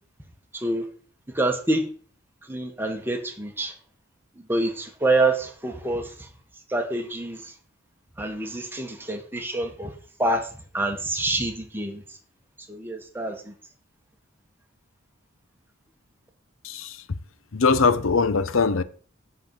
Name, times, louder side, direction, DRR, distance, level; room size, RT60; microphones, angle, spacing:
voice 1, 0.5-0.9 1.3-1.8 2.5-3.7 4.4-6.3 6.7-7.5 8.2-9.9 10.2-10.5 10.7-12.0 12.7-13.5, right 2 dB, 10° right, 1.4 m, -26 dB
voice 2, 16.6-17.2 17.5-18.8, left 4 dB, 80° left, 0.7 m, -22 dB
10.0 x 4.1 x 7.6 m
head